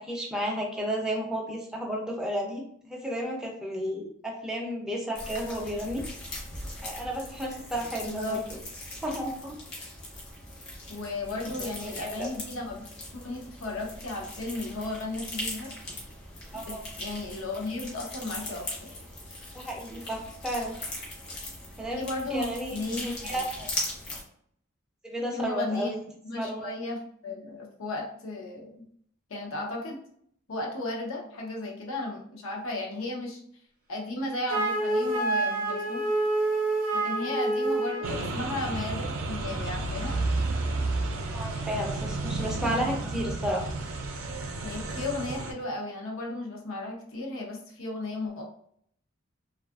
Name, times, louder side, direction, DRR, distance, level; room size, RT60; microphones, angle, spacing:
voice 1, 0.0-6.0 6.8-8.5 9.0-9.6 11.6-12.3 16.5-16.9 19.5-20.8 21.8-22.0 22.3-22.8 23.0-23.7 25.0-26.0 26.3-26.8 41.3-43.7, equal, 5° right, -1 dB, 0.5 m, -32 dB
sound 1, 5.1-24.2, left 1 dB, 55° left, 0.9 m, -40 dB
voice 2, 8.0-8.4 10.9-12.8 13.1-15.7 16.5-18.9 21.9-23.4 25.3-25.9 26.2-28.8 29.3-30.0 30.5-33.4 33.9-36.1 36.9-40.1 44.6-48.4, left 2 dB, 80° left, -1 dB, 0.6 m, -35 dB
Wind instrument woodwind instrument, 34.5-38.2, right 2 dB, 45° right, 0.7 m, -27 dB
sound 2, 38.0-45.5, right 2 dB, 85° right, 0.4 m, -31 dB
2.5 x 2.4 x 2.3 m, 0.65 s
head